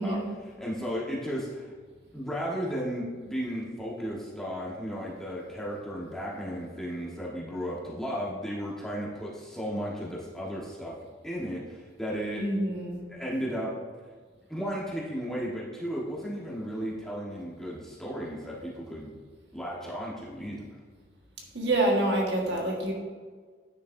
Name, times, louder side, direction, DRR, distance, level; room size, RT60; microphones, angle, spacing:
voice 1, 0.0-1.7 2.1-10.9 11.2-12.4 13.1-13.7 14.5-19.1 19.5-20.6, equal, 5° left, -6 dB, 1.3 m, -34 dB
voice 2, 12.4-13.0 21.5-22.9, right 1 dB, 70° right, -1 dB, 1.5 m, -26 dB
9.4 x 6.4 x 2.7 m, 1.5 s
head